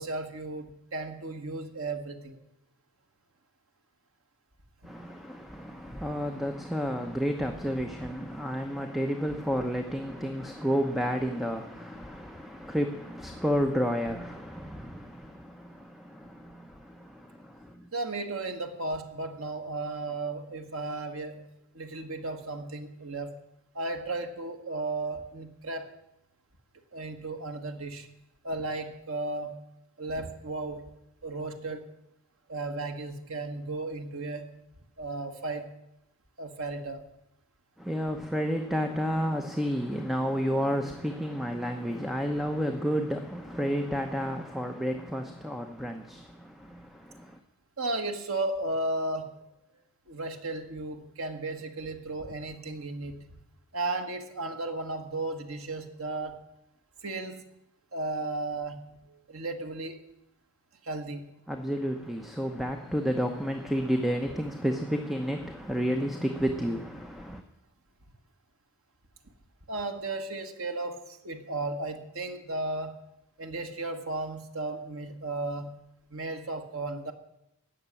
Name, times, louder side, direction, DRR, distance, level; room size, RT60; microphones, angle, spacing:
voice 1, 0.0-2.4 17.9-21.5 21.7-23.3 23.7-25.9 26.9-28.1 28.4-29.6 30.0-30.9 31.2-31.9 32.5-34.6 35.0-35.7 36.4-37.1 47.8-49.5 50.1-53.2 53.7-56.4 57.0-57.4 57.9-60.0 60.8-61.3 69.7-73.1 73.4-75.8 76.1-77.1, right 2 dB, 65° right, 1.6 m, -35 dB
voice 2, 4.8-17.9 37.8-47.4 61.5-67.4, equal, ahead, 0.8 m, -31 dB
16.0 x 6.7 x 9.8 m
head